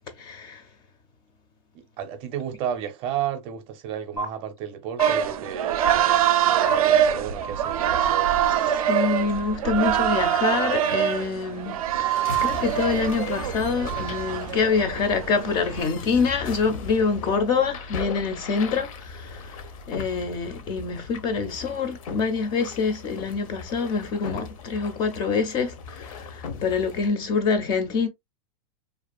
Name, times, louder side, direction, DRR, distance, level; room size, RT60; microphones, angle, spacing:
voice 1, 0.2-0.6 8.7-28.1, left 5 dB, 25° left, 0.4 m, -26 dB
voice 2, 1.7-5.9 6.5-8.7, right 9 dB, 35° right, 0.6 m, -33 dB
sound 1, 4.2-4.3 5.0-5.1 5.8-5.9 6.7-6.8 7.4-9.5, right 3 dB, 85° left, 1.2 m, -33 dB
sound 2, 5.0-15.8, right 10 dB, 80° right, 0.4 m, -24 dB
sound 3, 10.1-27.1, left 5 dB, 70° left, 0.7 m, -38 dB
2.5 x 2.3 x 2.3 m
supercardioid pair, 150°, 18 cm